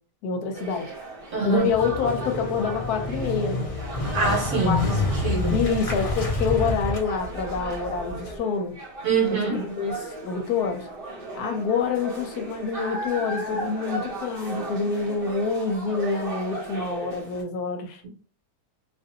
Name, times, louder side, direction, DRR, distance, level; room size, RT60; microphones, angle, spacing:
voice 1, 0.2-0.9 1.4-3.7 4.6-4.9 5.5-8.8 9.3-10.9 11.3-18.0, left 5 dB, 75° left, 1.1 m, -27 dB
sound 1, 0.5-17.4, right 1 dB, 40° right, 1.0 m, -37 dB
voice 2, 1.3-1.7 4.1-4.8 5.2-5.6 9.0-9.6, right 3 dB, 60° right, 1.3 m, -24 dB
Motorcycle, 1.6-8.4, left 2 dB, 55° left, 0.3 m, -29 dB
2.7 x 2.5 x 2.6 m
omnidirectional pair, 1.7 m